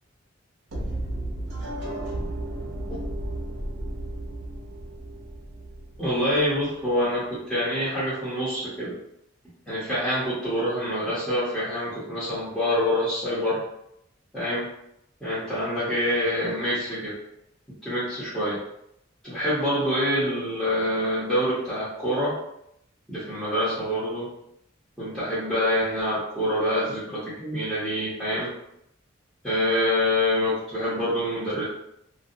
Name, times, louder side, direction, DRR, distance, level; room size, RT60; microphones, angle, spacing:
sound 1, 0.7-6.7, right 1 dB, 65° right, 0.7 m, -33 dB
voice 1, 6.0-8.9 9.7-13.6 14.3-14.7 15.2-17.1 17.8-18.6 19.2-22.3 23.1-24.3 25.0-28.5 29.4-31.6, left 1 dB, ahead, -11 dB, 0.8 m, -26 dB
2.4 x 2.2 x 2.7 m, 0.78 s
head